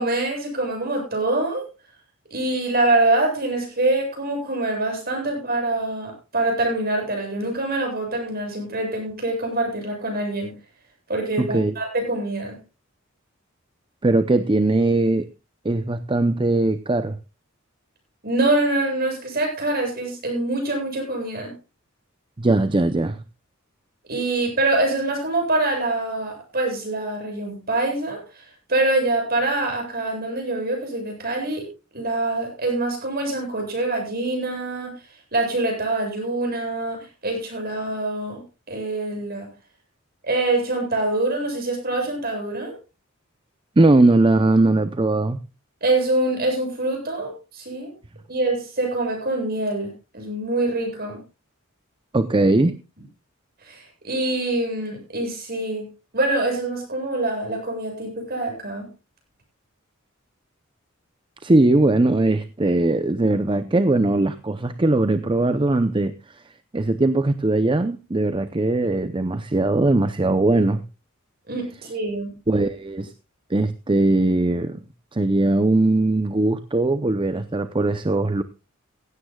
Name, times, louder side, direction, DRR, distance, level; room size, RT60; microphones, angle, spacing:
voice 1, 0.0-1.7 2.3-10.5 11.1-12.6 18.2-21.5 24.1-31.7 31.9-35.0 35.3-38.4 38.7-39.5 40.2-42.8 45.8-47.9 48.3-51.2 53.6-55.8 56.1-58.9 71.5-72.3, right 2 dB, 50° right, 2 dB, 7.9 m, -25 dB
voice 2, 11.4-11.7 14.0-15.3 15.6-17.2 22.4-23.2 43.8-45.4 52.1-52.8 61.4-66.1 66.7-70.8 72.5-73.1 73.5-74.8 75.1-78.4, right 2 dB, 25° right, 11 dB, 0.6 m, -20 dB
16.5 x 16.0 x 2.3 m, 0.30 s
head